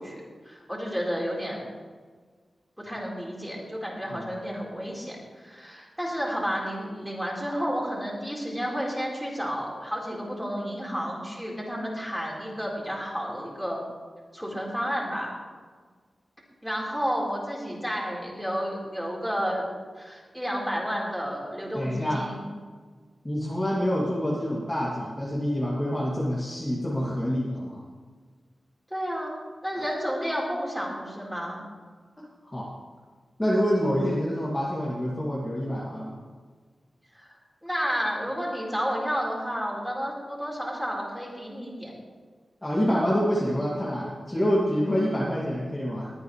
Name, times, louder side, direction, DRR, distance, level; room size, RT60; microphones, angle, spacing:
voice 1, 0.0-1.7 2.8-13.8 14.3-15.3 16.6-19.6 20.0-22.4 28.9-29.4 29.6-31.6 37.1-41.9, equal, 5° right, -4 dB, 4.4 m, -31 dB
voice 2, 21.7-22.3 23.2-27.8 29.8-29.9 32.2-32.7 33.4-36.2 42.6-46.1, equal, 15° left, -7 dB, 2.6 m, -27 dB
21.0 x 9.4 x 3.3 m, 1.5 s
wide cardioid pair, 75°, 0 cm